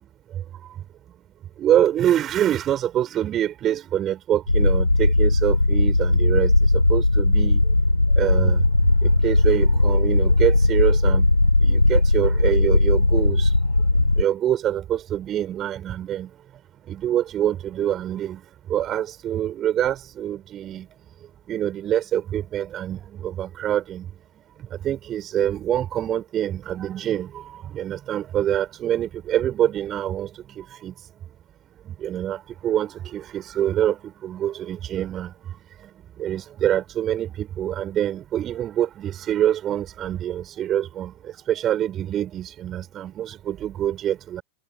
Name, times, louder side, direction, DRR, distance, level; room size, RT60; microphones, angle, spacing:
voice 1, 1.6-6.5 6.9-7.6 8.2-8.6 9.0-11.3 11.6-13.5 14.2-16.3 16.9-18.4 18.7-20.9 21.5-24.1 24.8-30.3 30.6-30.9 31.9-35.3 36.2-41.1 41.5-44.4, right 11 dB, 30° right, 6.1 m, -25 dB
sound 1, 4.5-14.2, left 2 dB, 85° left, 0.3 m, -18 dB
figure-of-eight pair, 90°, 0 cm